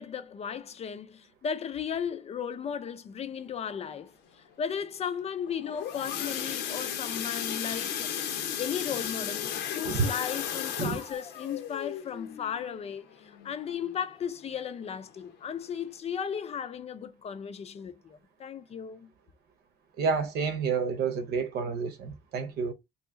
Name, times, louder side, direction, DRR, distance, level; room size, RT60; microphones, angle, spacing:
voice 1, 0.0-4.1 4.6-19.1, left 7 dB, 40° left, 0.5 m, -36 dB
sound 1, 5.5-14.1 14.6-14.8 15.1-15.2 15.7-15.8, left 9 dB, 80° left, 0.7 m, -35 dB
voice 2, 20.0-22.7, right 5 dB, 70° right, 0.9 m, -29 dB
2.8 x 2.8 x 3.6 m
cardioid pair, 110°, 17 cm